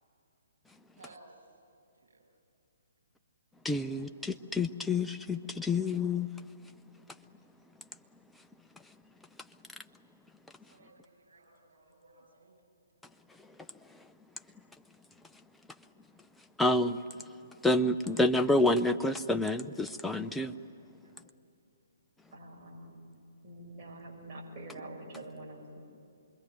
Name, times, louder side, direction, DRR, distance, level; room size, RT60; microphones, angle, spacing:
voice 1, 1.0-1.3 1.9-2.2 10.7-12.6 21.0-21.2, right 3 dB, 70° right, 0 dB, 7.9 m, -58 dB
voice 2, 3.6-6.3 16.6-17.0 17.6-20.6, left 2 dB, 5° left, 7 dB, 0.6 m, -28 dB
voice 3, 22.3-23.1 23.4-25.8, right 1 dB, 35° right, -2 dB, 6.4 m, -46 dB
26.5 x 22.0 x 9.4 m, 2.7 s
figure-of-eight pair, 130°, 0 cm